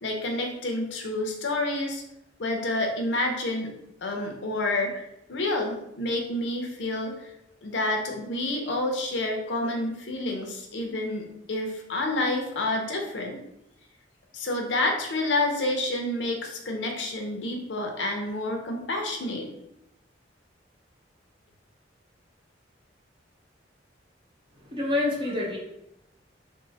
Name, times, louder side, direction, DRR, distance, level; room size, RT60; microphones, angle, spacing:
voice 1, 0.0-2.0 2.4-3.7 4.0-7.1 7.6-13.4 14.3-19.5, left 2 dB, 70° left, 2 dB, 0.6 m, -29 dB
voice 2, 24.5-25.6, left 2 dB, 25° right, -3 dB, 0.8 m, -27 dB
3.7 x 2.0 x 3.9 m, 0.84 s
head